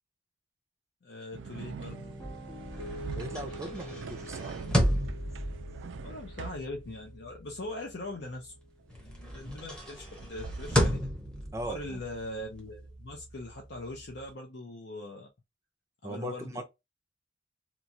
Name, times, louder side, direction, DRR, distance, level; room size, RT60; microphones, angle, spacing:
voice 1, 1.0-2.2 6.0-8.5 9.0-11.0 11.6-15.3 16.0-16.6, left 2 dB, 60° left, 0.6 m, -41 dB
sound 1, 1.3-6.7 10.1-10.9, right 6 dB, 80° right, 0.3 m, -44 dB
Piano, 1.4-9.5, equal, 20° left, 1.6 m, -47 dB
sound 2, 2.1-8.6 8.9-14.3, equal, 5° left, 0.8 m, -34 dB
voice 2, 3.2-4.6 11.5-12.0 16.0-16.6, right 1 dB, 15° right, 0.5 m, -39 dB
3.0 x 2.4 x 2.6 m
head